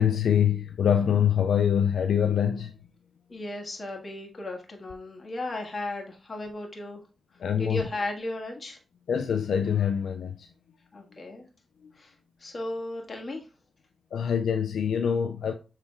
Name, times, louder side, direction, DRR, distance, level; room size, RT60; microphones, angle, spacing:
voice 1, 0.0-2.7 7.4-7.9 9.1-10.5 11.8-11.9 14.1-15.5, left 8 dB, 85° left, 0.3 m, -24 dB
voice 2, 3.3-7.0 7.6-8.8 10.9-11.4 12.0-12.1 12.4-13.4, left 2 dB, 45° left, 1.5 m, -35 dB
7.2 x 3.2 x 2.2 m
cardioid pair, 50°, 0 cm